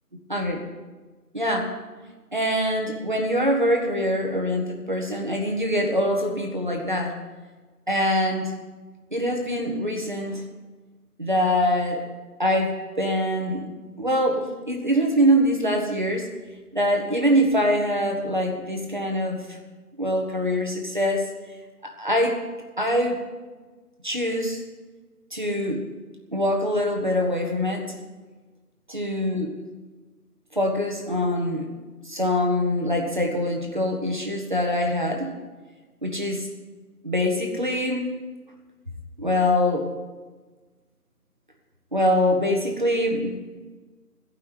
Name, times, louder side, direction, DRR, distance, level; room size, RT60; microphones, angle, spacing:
voice 1, 1.3-1.7 2.3-7.1 7.9-8.5 9.1-10.4 11.2-12.0 12.4-13.7 14.0-16.3 16.7-19.6 20.0-21.3 21.8-22.4 22.8-23.2 24.0-24.6 25.3-25.8 26.3-28.0 28.9-29.5 30.5-31.7 32.0-35.3 36.0-36.5 37.0-38.1 39.2-39.9 41.9-43.4, equal, 30° right, 2 dB, 1.3 m, -24 dB
15.5 x 5.7 x 9.6 m, 1.3 s
figure-of-eight pair, 180°, 47 cm